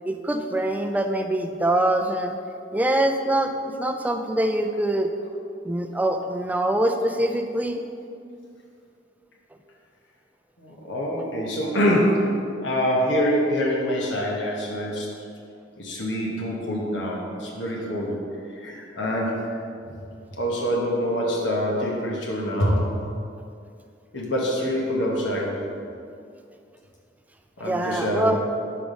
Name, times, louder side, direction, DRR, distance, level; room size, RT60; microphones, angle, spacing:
voice 1, 0.1-2.4 2.7-3.5 3.8-5.1 5.6-7.8 27.6-28.4, right 1 dB, 10° right, 5 dB, 0.3 m, -24 dB
voice 2, 10.6-15.1 15.8-18.2 18.6-19.4 20.4-22.9 24.1-25.6 27.6-28.4, equal, 75° left, -2 dB, 1.1 m, -25 dB
5.4 x 4.8 x 5.1 m, 2.4 s
head